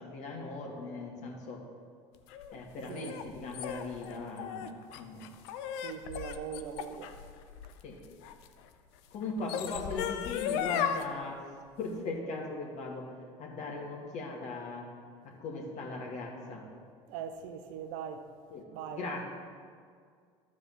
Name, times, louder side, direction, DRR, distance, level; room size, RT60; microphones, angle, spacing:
voice 1, 0.0-1.6 2.5-5.3 7.8-8.0 9.1-11.5 11.8-13.1 13.4-14.9 15.2-16.6 18.5-18.7 18.9-19.3, left 3 dB, 55° left, 2.2 m, -39 dB
sound 1, 2.3-8.5 9.2-11.0, left 9 dB, 75° left, 0.6 m, -36 dB
voice 2, 5.8-7.2 17.1-18.3 18.7-19.2, right 8 dB, 70° right, 0.8 m, -41 dB
12.5 x 4.9 x 6.3 m
hypercardioid pair, 75°, 15 cm